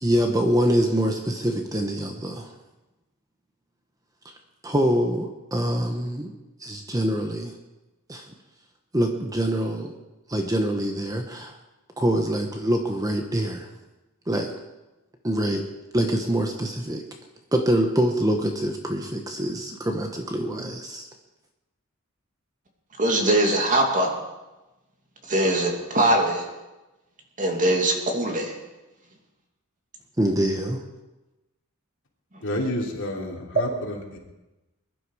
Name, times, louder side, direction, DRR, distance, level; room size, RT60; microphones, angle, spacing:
voice 1, 0.0-2.5 4.6-7.5 8.1-8.3 8.9-9.9 10.3-11.6 12.0-13.7 14.3-14.5 15.2-15.7 15.9-17.0 17.5-21.1 30.2-30.8, right 1 dB, 15° right, 3 dB, 1.0 m, -25 dB
voice 2, 23.0-24.1 25.3-26.5 27.4-28.5, right 1 dB, 40° right, 1 dB, 2.6 m, -22 dB
voice 3, 32.4-34.2, left 1 dB, 60° left, -1 dB, 3.1 m, -30 dB
21.5 x 11.5 x 4.9 m, 1.1 s
head